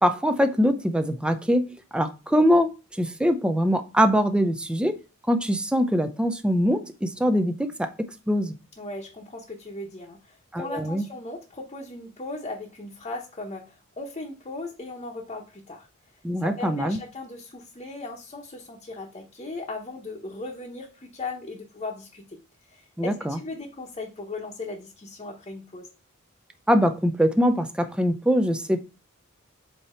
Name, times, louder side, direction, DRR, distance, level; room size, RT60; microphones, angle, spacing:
voice 1, 0.0-5.0 5.3-8.5 10.5-11.0 16.2-17.0 23.0-23.4 26.7-28.8, equal, 5° right, 0.5 m, -23 dB
voice 2, 8.8-15.9 16.4-22.4 22.7-25.9, left 2 dB, 30° left, 0.9 m, -37 dB
7.9 x 2.9 x 4.3 m
head